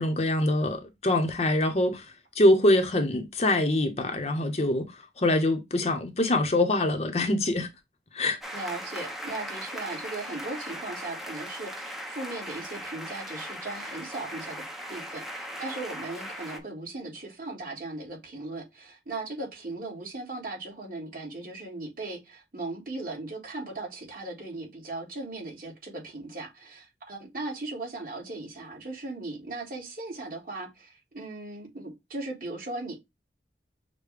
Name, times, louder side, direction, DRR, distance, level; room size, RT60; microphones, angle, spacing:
voice 1, 0.0-2.0 2.4-4.9 5.2-7.7 8.1-8.4, left 1 dB, 35° left, 0.8 m, -24 dB
sound 1, 8.4-16.6, equal, ahead, 0.6 m, -38 dB
voice 2, 8.5-32.9, right 2 dB, 50° right, 1.9 m, -38 dB
6.5 x 2.2 x 3.3 m
head